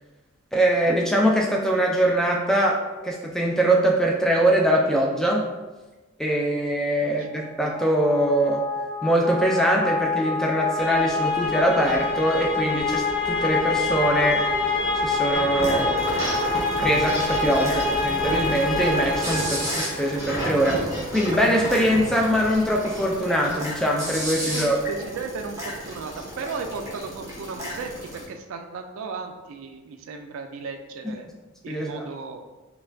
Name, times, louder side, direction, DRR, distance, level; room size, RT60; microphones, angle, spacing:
voice 1, 0.5-5.4 6.2-8.6 9.0-14.5 15.0-15.9 16.8-20.8 21.1-24.8 31.0-31.2 31.7-32.1, right 1 dB, ahead, -1 dB, 0.3 m, -22 dB
voice 2, 7.0-7.5 17.6-17.8 24.4-31.3 31.6-32.4, right 4 dB, 80° right, 5 dB, 0.3 m, -36 dB
sound 1, 7.4-20.2, left 3 dB, 25° left, 0.9 m, -26 dB
sound 2, 9.1-24.4, equal, 40° left, 1.3 m, -40 dB
sound 3, 15.3-28.2, equal, 15° right, 0.8 m, -32 dB
4.1 x 2.2 x 2.6 m, 1.2 s
head